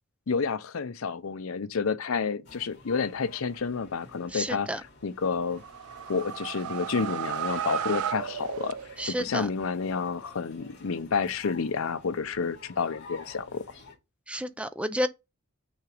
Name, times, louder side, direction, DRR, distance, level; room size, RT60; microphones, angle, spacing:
voice 1, 0.3-5.6 6.1-8.8 9.1-13.6, left 5 dB, 70° left, 0.6 m, -30 dB
sound 1, 2.4-14.0, left 3 dB, 55° left, 2.4 m, -51 dB
voice 2, 4.3-4.8 9.0-9.5 14.3-15.1, equal, 5° right, 0.4 m, -30 dB
sound 2, 5.5-9.3, right 9 dB, 80° right, 0.3 m, -34 dB
6.3 x 3.8 x 4.9 m
head